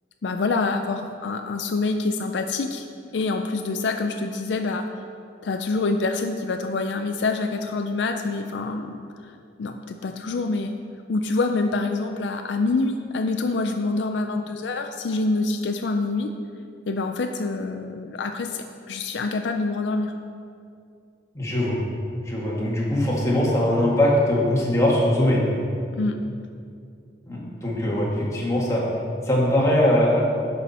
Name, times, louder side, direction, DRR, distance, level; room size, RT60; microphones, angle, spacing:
voice 1, 0.2-2.8 3.1-4.9 5.4-9.0 9.6-10.7 11.1-16.3 16.9-20.1 25.9-26.2, left 3 dB, 70° left, 5 dB, 0.4 m, -26 dB
voice 2, 21.4-21.8 22.3-25.4 27.3-28.8 29.3-30.2, left 1 dB, 15° left, -5 dB, 1.8 m, -21 dB
11.0 x 5.7 x 4.2 m, 2.4 s
head